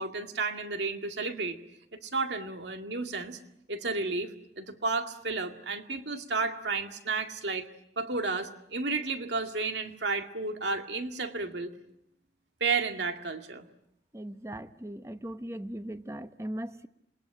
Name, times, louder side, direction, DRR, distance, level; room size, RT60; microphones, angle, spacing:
voice 1, 0.0-1.6 2.0-3.4 3.7-7.6 8.0-11.7 12.6-13.7, right 4 dB, 80° right, 6 dB, 2.1 m, -32 dB
voice 2, 14.1-16.9, right 1 dB, 15° right, 10 dB, 1.0 m, -39 dB
27.0 x 21.5 x 9.1 m, 0.80 s
head